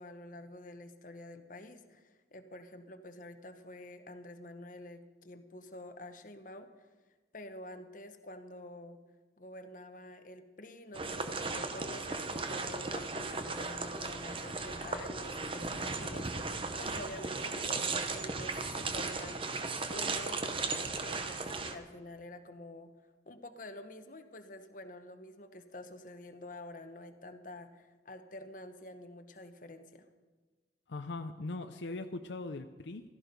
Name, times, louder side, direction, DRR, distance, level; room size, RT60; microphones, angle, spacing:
voice 1, 0.0-6.9 7.3-9.0 9.4-22.9 23.3-30.1, left 1 dB, 45° left, 8 dB, 1.0 m, -48 dB
sound 1, 10.9-21.7, right 3 dB, 30° right, 0.9 m, -36 dB
voice 2, 30.9-33.0, left 2 dB, 75° left, 7 dB, 0.6 m, -40 dB
15.5 x 13.5 x 5.2 m, 1.3 s
head